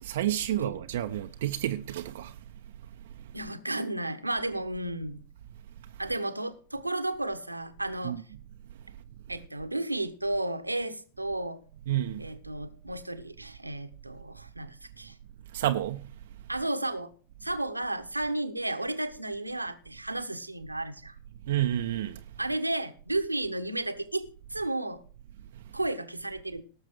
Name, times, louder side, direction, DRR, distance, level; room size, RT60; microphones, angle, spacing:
voice 1, 0.0-2.4 8.0-8.2 11.9-12.3 15.5-16.0 21.5-22.2 25.5-25.6, right 12 dB, 55° right, 0.8 m, -30 dB
voice 2, 3.3-5.2 6.0-8.2 9.3-11.6 12.2-15.1 16.5-17.1 17.4-21.1 22.4-25.0 25.7-26.6, right 2 dB, 85° right, 1.2 m, -33 dB
18.0 x 7.2 x 4.8 m
figure-of-eight pair, 90°, 0 cm